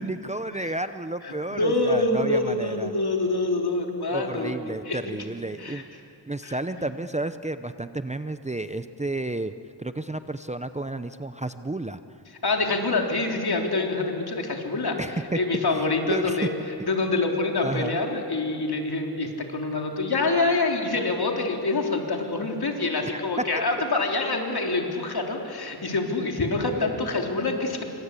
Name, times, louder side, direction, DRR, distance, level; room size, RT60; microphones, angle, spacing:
voice 1, 0.0-2.9 4.1-5.9 6.3-9.5 9.8-12.0 15.0-15.4 15.7-16.5 17.6-18.0 23.1-23.2, right 2 dB, 15° right, 10 dB, 0.7 m, -31 dB
voice 2, 1.2-4.5 4.9-5.0 5.6-5.8 6.4-6.6 12.4-15.0 15.3-16.5 16.9-27.8, left 3 dB, 55° left, 2 dB, 3.6 m, -26 dB
28.5 x 25.0 x 8.4 m, 2.8 s
wide cardioid pair, 100°, 44 cm